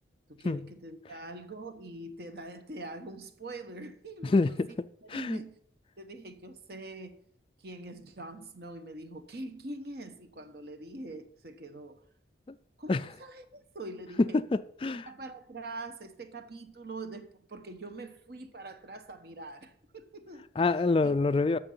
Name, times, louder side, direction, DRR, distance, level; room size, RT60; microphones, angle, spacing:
voice 1, 0.3-4.6 5.0-5.6 6.0-7.2 7.6-12.0 12.8-14.4 15.1-20.4 21.0-21.4, right 2 dB, 55° right, 1.1 m, -44 dB
voice 2, 4.2-4.7 5.1-5.4 12.9-13.1 14.2-15.1 20.6-21.6, left 3 dB, 30° left, 0.3 m, -26 dB
14.0 x 5.9 x 5.5 m
head